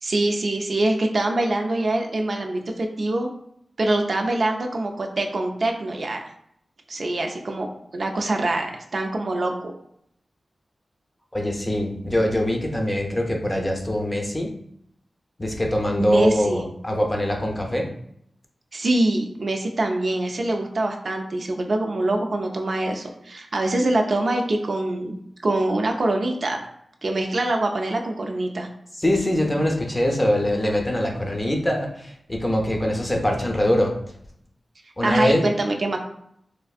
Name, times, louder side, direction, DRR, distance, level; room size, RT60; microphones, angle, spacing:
voice 1, 0.0-3.3 3.8-6.2 6.9-7.7 7.9-9.7 16.0-16.6 18.7-26.6 27.0-28.7 35.0-36.0, right 2 dB, 60° right, 3 dB, 0.4 m, -24 dB
voice 2, 11.3-14.5 15.4-17.9 29.0-34.0 35.0-35.4, left 1 dB, 20° left, 1 dB, 0.6 m, -23 dB
3.2 x 2.5 x 2.4 m, 0.72 s
cardioid pair, 60°, 0 cm